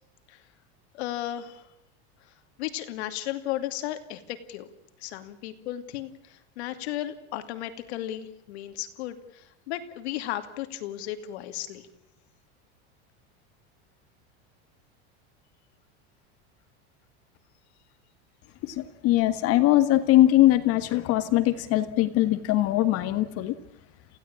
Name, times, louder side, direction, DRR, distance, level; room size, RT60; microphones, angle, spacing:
voice 1, 0.9-1.7 2.6-4.7 5.0-11.9, left 13 dB, 80° left, 9 dB, 2.7 m, -35 dB
voice 2, 18.6-23.5, left 15 dB, 45° left, 11 dB, 1.7 m, -21 dB
28.5 x 16.5 x 8.7 m, 0.84 s
supercardioid pair, 150°, 33 cm